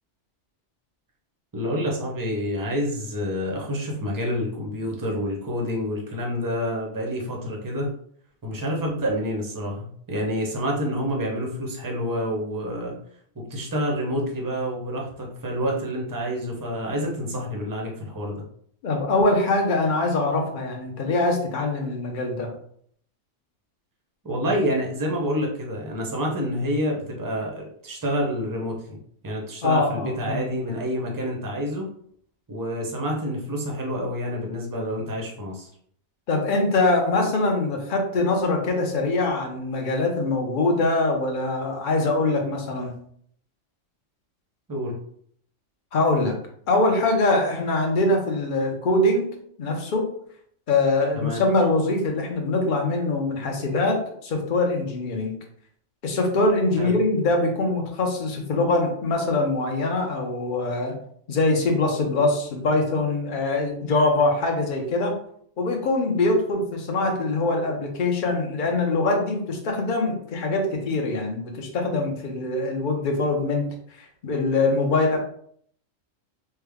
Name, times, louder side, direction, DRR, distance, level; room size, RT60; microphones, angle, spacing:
voice 1, 1.5-7.9 8.4-12.9 13.4-18.3 24.2-29.0 29.2-31.9 32.5-35.7 44.7-45.0 51.1-51.4 56.8-57.0, equal, 25° right, 0 dB, 0.5 m, -28 dB
voice 2, 18.8-22.5 29.6-30.4 36.3-42.9 45.9-46.3 46.7-49.3 49.6-50.1 50.7-55.3 56.0-60.9 61.3-65.1 65.6-73.7 74.0-75.2, left 2 dB, 50° left, 2 dB, 0.8 m, -23 dB
3.4 x 2.2 x 3.4 m, 0.64 s
omnidirectional pair, 1.3 m